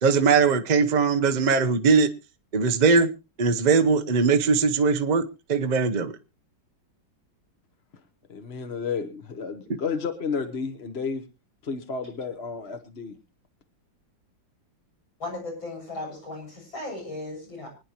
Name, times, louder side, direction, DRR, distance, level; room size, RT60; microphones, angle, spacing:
voice 1, 0.0-2.1 2.5-3.1 3.4-6.1, right 5 dB, 40° right, 7 dB, 0.6 m, -20 dB
voice 2, 8.3-11.2 11.6-13.2, left 5 dB, 40° left, 7 dB, 1.2 m, -31 dB
voice 3, 15.2-17.7, left 2 dB, 90° left, -1 dB, 7.5 m, -36 dB
24.5 x 9.8 x 2.9 m, 0.28 s
omnidirectional pair, 2.1 m